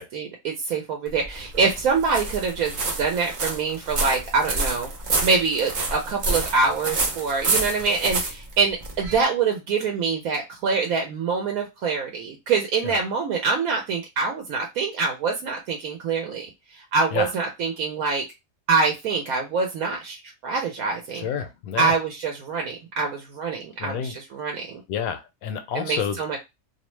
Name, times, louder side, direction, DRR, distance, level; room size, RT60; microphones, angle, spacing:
voice 1, 0.0-4.9 5.2-16.5 16.7-18.2 18.7-21.3 21.8-24.8 25.7-26.4, right 4 dB, 80° right, 2 dB, 1.1 m, -25 dB
sound 1, 1.1-9.2, right 3 dB, 50° right, 0.6 m, -28 dB
voice 2, 21.1-21.9 23.8-24.2 24.9-26.2, left 7 dB, 90° left, 7 dB, 1.1 m, -29 dB
2.7 x 2.1 x 3.0 m, 0.22 s
omnidirectional pair, 1.5 m